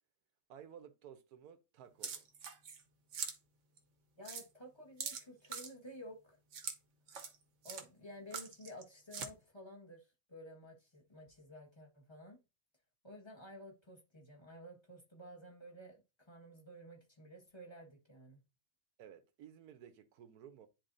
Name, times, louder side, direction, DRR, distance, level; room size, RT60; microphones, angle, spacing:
voice 1, 0.5-2.2 19.0-20.7, right 9 dB, 85° right, 1.3 m, -55 dB
sound 1, 2.0-2.8 3.1-3.4 3.8-3.9 4.3-4.5 5.0-5.7 6.5-6.8 7.1-7.4 7.6-7.8 8.3-8.8 9.1-9.3, right 6 dB, 60° right, 1.1 m, -43 dB
voice 2, 4.2-6.4 7.6-12.4 13.0-18.4, equal, 20° left, 1.5 m, -53 dB
10.5 x 4.0 x 2.6 m
omnidirectional pair, 1.6 m